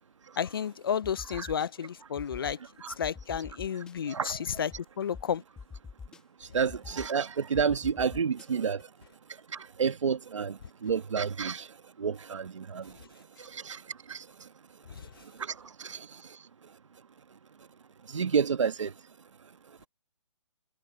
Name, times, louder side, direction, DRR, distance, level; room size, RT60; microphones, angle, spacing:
voice 1, 0.4-2.6 3.0-5.4 14.9-15.1, left 8 dB, 45° left, 0.5 m, -32 dB
sound 1, 1.0-1.7 2.2-2.5 3.0-3.9 4.7-4.8 5.1-5.2 5.6-6.2 6.7-7.1 7.5-8.5, left 5 dB, 5° left, 1.1 m, -44 dB
voice 2, 6.5-8.8 9.8-11.6 12.0-12.9 13.5-13.8 14.1-14.2 15.8-16.0 18.1-18.9, right 6 dB, 70° right, 1.6 m, -29 dB
hypercardioid pair, 170°, 16 cm